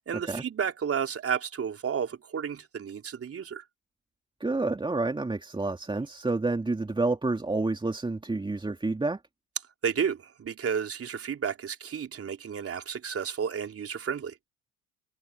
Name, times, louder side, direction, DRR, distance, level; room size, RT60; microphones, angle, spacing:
voice 1, 0.0-3.6 9.8-14.4, right 7 dB, 35° right, 3.9 m, -32 dB
voice 2, 4.4-9.2, right 3 dB, 10° right, 2.6 m, -29 dB
figure-of-eight pair, 60°, 42 cm